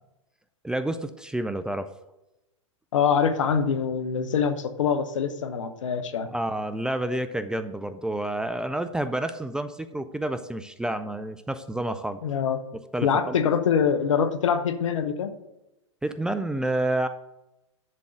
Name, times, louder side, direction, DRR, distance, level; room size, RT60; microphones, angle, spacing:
voice 1, 0.6-1.9 6.3-12.2 12.9-13.4 16.0-17.1, right 1 dB, 5° right, 10 dB, 0.5 m, -29 dB
voice 2, 2.9-6.3 12.2-12.6 13.0-15.3, left 7 dB, 75° left, 10 dB, 1.0 m, -24 dB
11.0 x 3.8 x 7.6 m, 0.95 s
hypercardioid pair, 110°, 16 cm